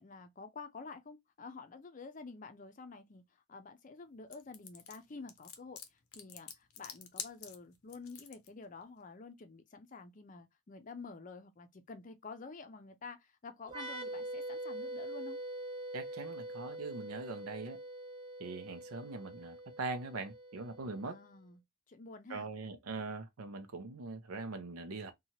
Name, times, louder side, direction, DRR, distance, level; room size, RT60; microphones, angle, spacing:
voice 1, 0.0-15.4 21.0-21.6 21.9-22.5, left 4 dB, 35° left, 0.5 m, -49 dB
sound 1, 4.3-8.5, left 8 dB, 90° left, 0.6 m, -47 dB
sound 2, 13.7-21.2, right 1 dB, 20° right, 0.8 m, -44 dB
voice 2, 15.9-17.8 18.4-21.2 22.3-25.1, right 3 dB, 90° right, 0.6 m, -42 dB
2.8 x 2.3 x 2.8 m
head